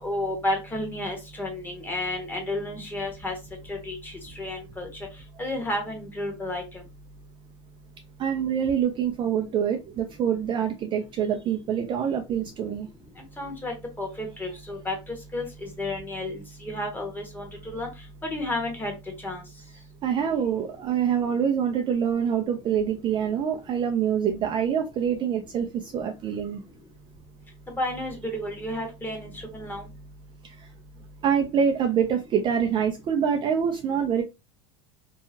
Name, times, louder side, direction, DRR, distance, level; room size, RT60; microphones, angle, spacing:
voice 1, 0.0-3.3 3.7-4.1 4.4-4.9 5.4-6.6 13.4-14.9 15.3-17.5 17.7-17.9 18.2-18.9 19.2-19.4 27.7-29.8, left 1 dB, 10° left, 2 dB, 1.1 m, -31 dB
voice 2, 8.2-12.9 20.0-26.6 31.2-34.2, right 8 dB, 30° right, 3 dB, 0.4 m, -25 dB
2.8 x 2.3 x 2.7 m, 0.24 s
supercardioid pair, 120°, 16 cm